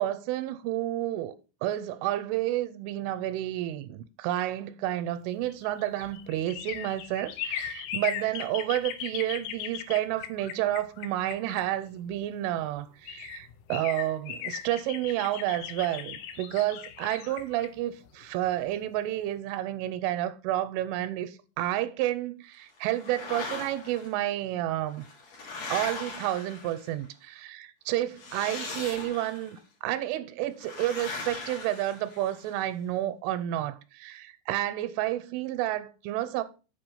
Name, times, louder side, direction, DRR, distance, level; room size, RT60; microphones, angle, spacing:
voice 1, 0.0-1.4 1.6-25.0 25.7-36.4, right 14 dB, 85° right, 3.1 m, -30 dB
sound 1, 5.4-12.2 12.8-12.9 13.1-18.8 19.2-19.3, left 10 dB, 90° left, 3.3 m, -38 dB
sound 2, 22.8-24.1 24.9-27.0 28.1-29.5 30.6-32.5, left 3 dB, 50° left, 2.2 m, -39 dB
7.3 x 5.6 x 5.5 m
omnidirectional pair, 5.6 m